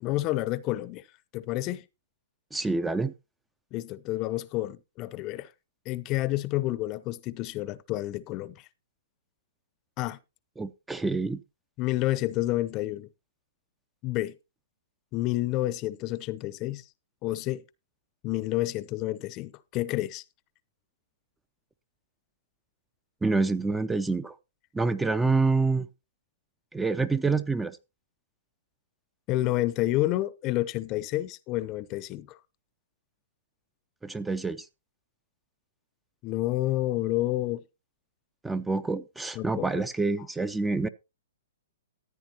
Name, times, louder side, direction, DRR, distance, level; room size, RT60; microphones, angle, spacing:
voice 1, 0.0-1.0 1.3-1.8 3.7-5.5 5.9-8.7 10.0-10.2 11.8-13.1 14.0-14.4 15.1-16.8 17.2-17.6 18.2-20.2 29.3-32.4 36.2-37.6 39.3-39.8, left 16 dB, 35° left, 0.7 m, -29 dB
voice 2, 2.5-3.1 10.6-11.4 23.2-24.4 24.7-25.9 26.7-27.8 34.0-34.6 38.4-40.9, right 3 dB, 5° right, 0.5 m, -27 dB
14.5 x 8.9 x 2.9 m
hypercardioid pair, 125°, 0 cm